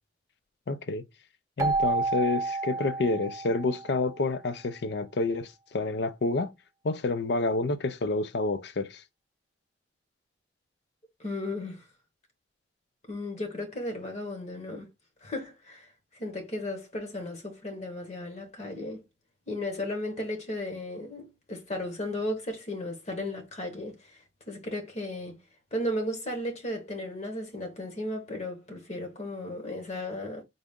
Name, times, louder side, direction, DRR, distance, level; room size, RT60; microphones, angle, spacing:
voice 1, 0.7-1.0 1.6-6.5 6.8-9.0, left 3 dB, 65° left, 0.5 m, -29 dB
Keyboard (musical), 1.6-4.2, right 3 dB, 20° right, 0.5 m, -30 dB
voice 2, 11.2-11.9 13.1-14.9 15.2-19.0 19.5-25.4 25.7-30.4, left 1 dB, 40° left, 1.0 m, -35 dB
3.9 x 2.4 x 3.5 m
head